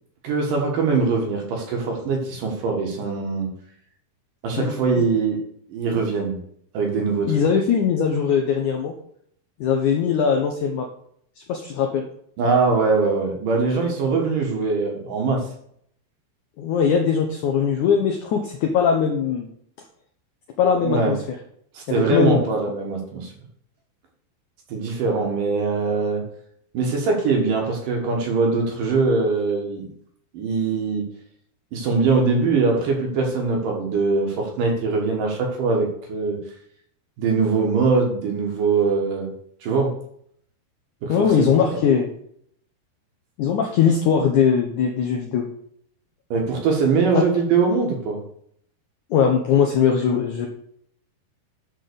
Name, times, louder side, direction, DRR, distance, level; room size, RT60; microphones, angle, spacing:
voice 1, 0.2-3.5 4.4-5.4 5.7-6.4 6.7-7.4 12.4-15.4 20.7-21.2 21.7-23.3 24.7-26.3 26.7-29.9 30.3-31.1 31.7-36.4 37.2-39.3 39.6-39.9 41.0-41.8 46.3-48.2, right 4 dB, 65° right, 1 dB, 2.8 m, -22 dB
voice 2, 4.6-5.0 7.3-8.9 9.6-10.9 11.5-12.0 16.6-19.5 20.6-21.2 21.9-22.4 41.1-42.1 43.4-45.5 47.2-47.3 49.1-50.5, left 7 dB, 80° left, 3 dB, 1.8 m, -20 dB
10.5 x 3.9 x 6.8 m, 0.68 s
omnidirectional pair, 4.6 m